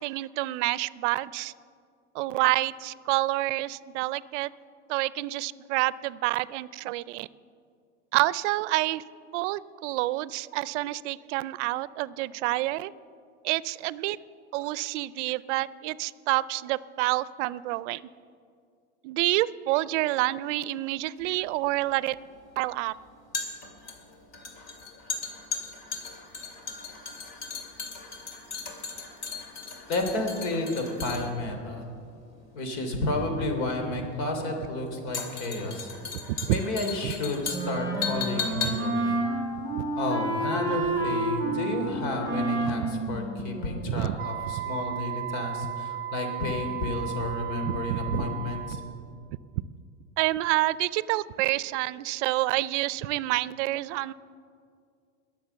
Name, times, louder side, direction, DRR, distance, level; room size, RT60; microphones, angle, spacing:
voice 1, 0.0-1.5 2.1-4.5 4.9-7.3 8.1-9.0 9.3-12.9 13.4-14.2 14.5-18.0 19.0-22.2 22.6-22.9 36.3-36.6 37.0-37.1 39.8-39.9 42.8-42.9 43.9-44.1 47.6-48.2 49.5-49.6 50.2-54.1, right 18 dB, 75° right, 19 dB, 0.5 m, -28 dB
sound 1, 21.2-40.5 40.7-40.9, left 5 dB, 45° left, 2.7 m, -37 dB
voice 2, 29.9-31.9 32.5-35.9 36.5-39.2 39.9-48.8, left 2 dB, 65° left, 4 dB, 3.2 m, -31 dB
Wind instrument woodwind instrument, 37.5-44.1, right 1 dB, 10° left, 3.7 m, -30 dB
Wind instrument woodwind instrument 2, 44.2-49.0, right 13 dB, 35° right, 0.6 m, -35 dB
21.0 x 7.2 x 6.9 m, 2.3 s
supercardioid pair, 130°, 36 cm